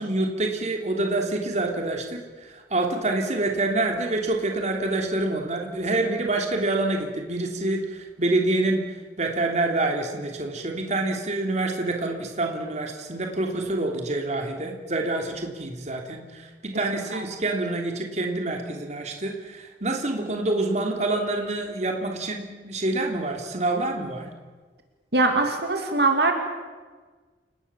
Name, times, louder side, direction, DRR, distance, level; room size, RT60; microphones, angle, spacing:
voice 1, 0.0-8.8 9.2-24.3, right 2 dB, 40° right, 2 dB, 3.1 m, -27 dB
voice 2, 25.1-26.3, right 3 dB, 65° right, 4 dB, 2.9 m, -22 dB
29.5 x 19.0 x 7.3 m, 1.4 s
head